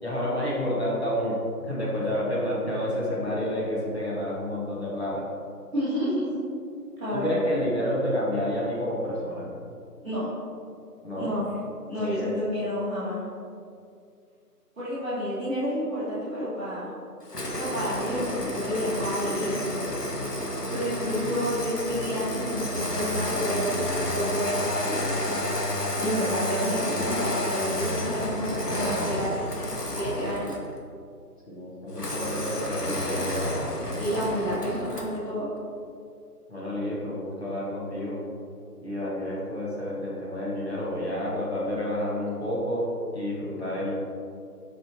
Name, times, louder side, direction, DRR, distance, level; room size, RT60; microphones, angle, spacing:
voice 1, 0.0-5.3 7.1-9.5 11.0-11.3 12.0-12.3 31.5-33.9 36.5-38.2 38.8-43.9, left 1 dB, 40° left, -6 dB, 1.7 m, -29 dB
voice 2, 5.7-6.3 7.0-7.3 10.0-10.3 11.1-11.5 11.9-13.2 14.7-16.9 17.6-19.8 20.7-25.0 26.0-30.6 34.0-35.5, equal, ahead, -26 dB, 1.7 m, -30 dB
Engine starting, 17.3-30.7 31.9-35.2, left 1 dB, 75° left, 1.6 m, -30 dB
10.0 x 5.6 x 3.0 m, 2.4 s
figure-of-eight pair, 165°, 47 cm